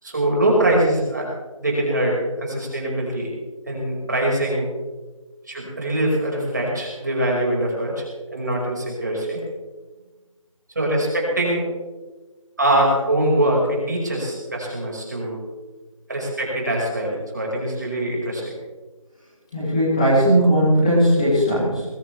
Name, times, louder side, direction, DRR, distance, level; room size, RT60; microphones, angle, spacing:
voice 1, 0.0-1.3 1.6-3.3 3.7-4.7 5.5-8.1 8.3-9.4 10.8-11.7 12.6-15.4 16.1-18.5, right 1 dB, 35° right, -2 dB, 5.3 m, -23 dB
voice 2, 19.5-21.8, equal, 10° left, -10 dB, 3.1 m, -18 dB
21.0 x 19.5 x 3.4 m, 1.3 s
figure-of-eight pair, 175°, 18 cm